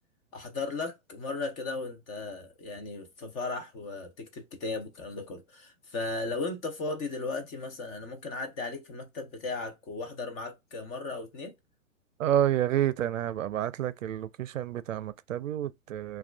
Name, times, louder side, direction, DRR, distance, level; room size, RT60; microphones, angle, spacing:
voice 1, 0.3-11.6, left 3 dB, 20° left, 0.5 m, -36 dB
voice 2, 12.2-16.2, right 11 dB, 70° right, 0.5 m, -29 dB
5.8 x 2.4 x 2.2 m
hypercardioid pair, 125°, 41 cm